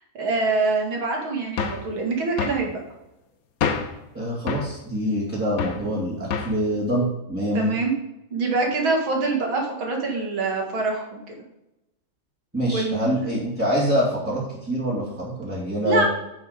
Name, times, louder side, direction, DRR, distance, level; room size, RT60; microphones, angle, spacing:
voice 1, 0.2-2.8 7.5-7.9 8.3-11.2 12.7-13.3 15.8-16.0, right 3 dB, 75° right, 0 dB, 2.9 m, -25 dB
sound 1, 1.6-1.9 2.4-2.7 3.6-4.0 4.5-4.7 5.6-5.9 6.3-6.6, left 6 dB, 55° left, 1.1 m, -27 dB
voice 2, 4.1-7.7 12.5-16.0, equal, 5° right, -8 dB, 2.6 m, -25 dB
8.0 x 7.5 x 5.2 m, 0.91 s
omnidirectional pair, 2.2 m